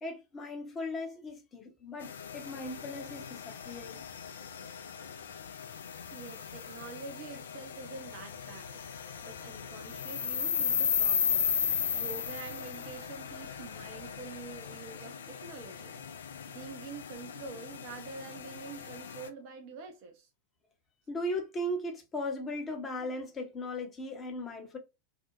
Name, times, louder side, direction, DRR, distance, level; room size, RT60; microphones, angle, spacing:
voice 1, 0.0-4.0 21.1-24.8, left 1 dB, 20° left, 0.7 m, -37 dB
sound 1, 2.0-19.3, left 7 dB, 65° left, 0.3 m, -36 dB
voice 2, 6.1-16.0 16.5-20.3, right 5 dB, 45° right, 0.5 m, -46 dB
2.4 x 2.1 x 2.8 m
figure-of-eight pair, 90°, 0 cm